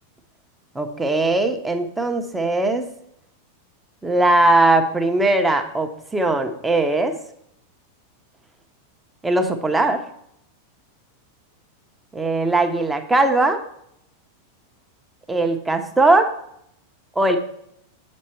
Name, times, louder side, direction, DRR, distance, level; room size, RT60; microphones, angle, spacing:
voice 1, 0.7-2.9 4.0-7.1 9.2-10.0 12.1-13.6 15.3-16.3 17.1-17.4, right 2 dB, 10° right, 5 dB, 1.0 m, -19 dB
8.3 x 6.4 x 4.5 m, 0.72 s
figure-of-eight pair, 90°, 0 cm